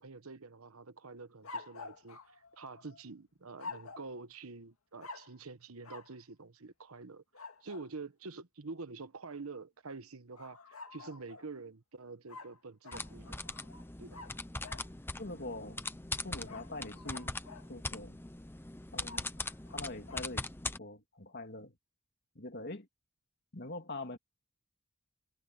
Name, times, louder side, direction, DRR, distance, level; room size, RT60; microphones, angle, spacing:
voice 1, 0.0-2.2 2.5-7.2 7.6-13.4 14.0-14.2, right 3 dB, 85° right, 1.1 m, -47 dB
sound 1, 1.4-3.0 3.6-4.2 5.0-5.4 5.8-6.1 7.3-7.9 10.3-11.5 12.3-14.9 16.5-17.7 19.0-20.2, left 3 dB, 90° left, 2.1 m, -49 dB
sound 2, 12.9-20.8, left 2 dB, 10° left, 0.8 m, -41 dB
voice 2, 15.2-17.3 17.7-18.2 18.9-19.3 19.7-20.5 20.8-21.8 22.3-22.9 23.5-24.2, left 2 dB, 50° left, 2.9 m, -44 dB
head